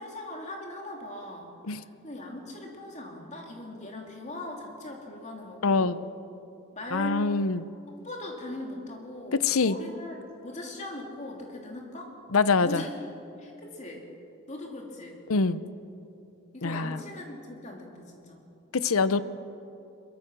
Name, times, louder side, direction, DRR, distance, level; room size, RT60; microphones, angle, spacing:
voice 1, 0.0-1.6 2.0-5.9 6.7-7.3 7.9-10.2 10.4-12.1 12.5-13.1 13.4-14.1 14.5-15.2 16.5-18.4 19.1-19.2, left 2 dB, 30° left, 0 dB, 3.1 m, -40 dB
voice 2, 5.6-6.1 6.9-7.7 9.4-9.8 12.3-12.8 15.3-15.6 16.6-17.0 18.7-19.2, left 4 dB, 80° left, 15 dB, 0.7 m, -24 dB
22.0 x 22.0 x 6.2 m, 2.8 s
head